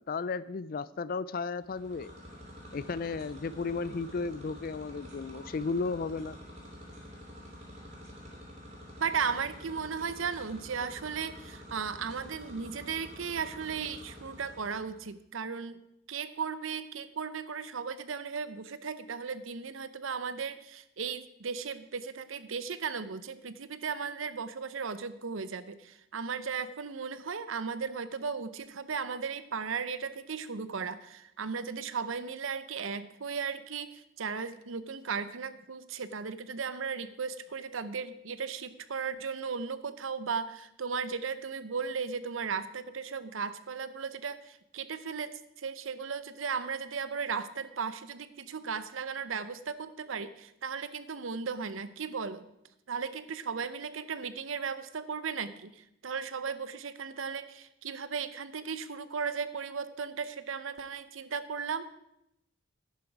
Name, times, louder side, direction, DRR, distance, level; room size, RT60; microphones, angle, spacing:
voice 1, 0.0-2.1 2.7-6.4, left 4 dB, 45° left, 17 dB, 0.4 m, -34 dB
sound 1, 1.6-15.0, equal, 35° right, 2.8 m, -48 dB
voice 2, 9.0-15.8 16.1-52.5 52.9-61.9, right 6 dB, 75° right, 14 dB, 0.7 m, -36 dB
11.0 x 10.5 x 4.8 m, 0.81 s
head